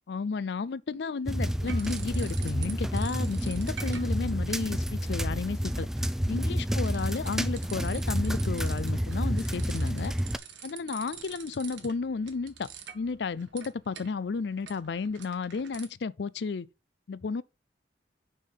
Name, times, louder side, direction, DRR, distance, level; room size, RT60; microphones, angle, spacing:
voice 1, 0.1-5.9 6.3-10.1 10.6-16.7 17.1-17.4, left 4 dB, 65° left, 0.4 m, -33 dB
sound 1, 1.3-10.4, equal, 5° right, 0.4 m, -29 dB
sound 2, 1.7-2.7 3.0-15.9, right 8 dB, 90° right, 1.6 m, -47 dB
6.4 x 5.7 x 5.3 m
head